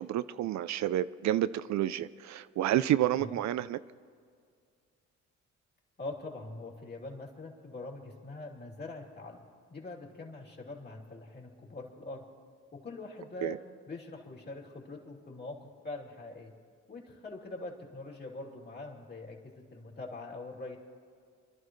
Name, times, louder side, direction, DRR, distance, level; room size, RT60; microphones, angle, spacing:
voice 1, 0.0-3.8 13.4-13.6, right 12 dB, 65° right, 14 dB, 0.5 m, -29 dB
voice 2, 6.0-9.4 9.7-12.2 12.7-13.6 13.8-16.5 16.9-20.8, left 2 dB, 35° left, -1 dB, 3.1 m, -43 dB
27.0 x 12.0 x 3.2 m, 2.1 s
cardioid pair, 90°, 30 cm